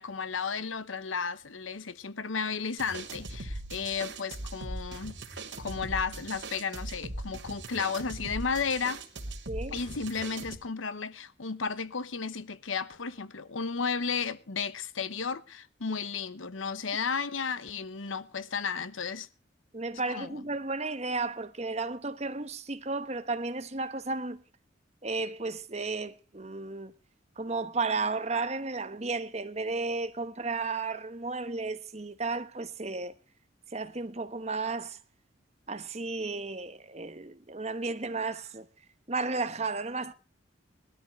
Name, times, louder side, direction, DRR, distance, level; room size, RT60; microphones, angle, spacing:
voice 1, 0.0-5.2 5.6-9.0 9.7-19.3 20.1-20.4, left 5 dB, 90° left, 1.0 m, -33 dB
sound 1, 2.8-10.6, right 2 dB, 70° right, 2.9 m, -40 dB
voice 2, 9.5-9.8 19.7-24.4 25.0-26.9 27.4-33.1 33.7-35.0 35.7-38.7 39.1-40.1, right 3 dB, 35° right, 1.2 m, -33 dB
20.5 x 13.0 x 3.2 m
head